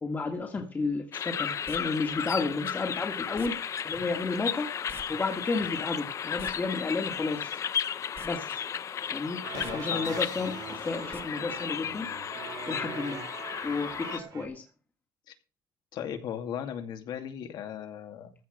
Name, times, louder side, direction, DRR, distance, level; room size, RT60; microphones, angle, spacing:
voice 1, 0.0-3.6 3.8-4.7 5.1-7.6 8.2-8.6 9.1-9.5 9.7-12.1 12.7-13.2 13.6-14.6, left 3 dB, 25° left, 3 dB, 1.9 m, -32 dB
sound 1, 1.1-14.2, left 8 dB, 45° left, 0.7 m, -34 dB
sound 2, 1.6-1.8 3.3-3.5 4.9-5.0 5.3-5.4 6.2-6.5 8.1-8.3 8.7-8.8 9.5-9.7 11.1-11.2 11.5-11.6, right 4 dB, 30° right, 1.4 m, -46 dB
sound 3, 9.4-14.5, right 7 dB, 60° right, 3.2 m, -42 dB
voice 2, 9.5-10.2 15.3-15.4 15.9-18.3, left 9 dB, 80° left, 6 dB, 2.5 m, -37 dB
15.0 x 5.1 x 7.9 m, 0.34 s
cardioid pair, 135°, 7 cm